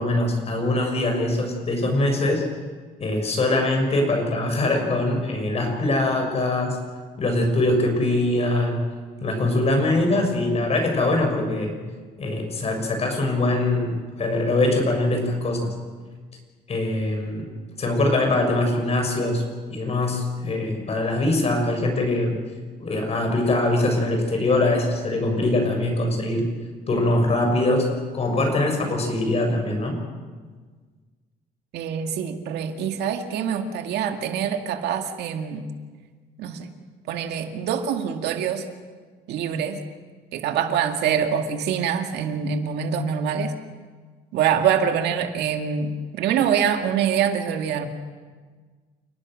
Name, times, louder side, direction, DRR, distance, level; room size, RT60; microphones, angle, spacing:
voice 1, 0.0-2.4 3.0-6.8 7.2-8.9 9.2-11.8 12.2-15.8 16.7-17.5 17.8-19.4 19.7-22.4 22.8-26.5 26.9-30.0, left 2 dB, 40° left, 3 dB, 6.8 m, -23 dB
voice 2, 31.7-35.7 36.4-36.7 37.1-38.7 39.3-39.8 40.3-43.5 44.3-47.9, right 8 dB, 80° right, 5 dB, 2.2 m, -25 dB
29.0 x 19.0 x 6.5 m, 1.5 s
cardioid pair, 110°, 17 cm